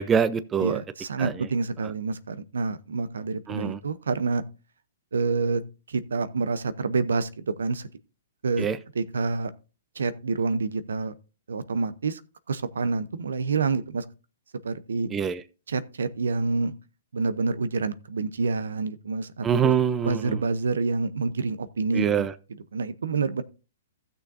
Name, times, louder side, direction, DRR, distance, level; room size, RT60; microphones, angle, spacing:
voice 1, 0.0-0.8 1.2-1.5 3.5-3.8 8.6-8.8 15.1-15.4 19.4-20.4 21.9-22.3, right 7 dB, 20° right, 0.6 m, -24 dB
voice 2, 0.6-4.4 5.1-5.6 5.9-7.9 8.4-8.7 8.9-9.5 10.0-11.1 11.5-12.2 12.5-14.1 14.6-15.1 15.7-16.7 17.1-19.7 20.0-22.3 22.7-23.4, right 4 dB, 75° right, 0.7 m, -27 dB
15.5 x 6.5 x 2.6 m
hypercardioid pair, 120°, 0 cm